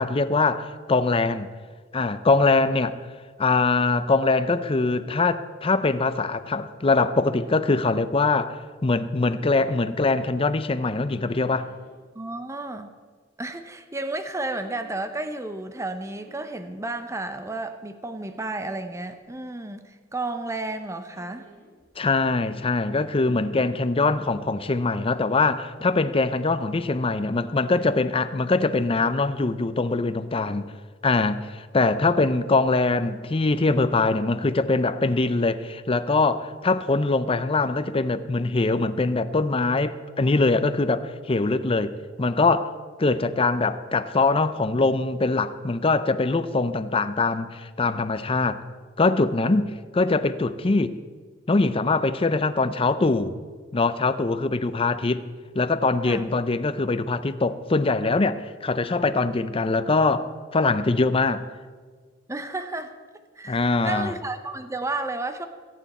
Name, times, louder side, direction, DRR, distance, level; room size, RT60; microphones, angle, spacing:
voice 1, 0.0-1.5 1.9-3.0 3.4-11.7 22.0-30.7 31.0-41.9 42.2-42.7 43.0-48.6 49.0-51.0 51.5-53.4 53.7-55.2 55.5-61.4 63.5-64.1, left 3 dB, 30° left, 0.5 m, -23 dB
sound 1, 7.1-7.7 9.4-9.9 11.4-11.9 14.4-15.0 16.1-16.8 18.2-18.9 19.2-19.3 21.1-22.0 22.9-23.6 24.6-24.9, right 2 dB, 65° right, 4.9 m, -52 dB
voice 2, 12.1-12.9 13.4-21.5 30.3-30.6 56.0-56.3 62.3-62.9 63.4-65.5, right 2 dB, 15° right, 0.7 m, -32 dB
22.5 x 9.3 x 4.3 m
head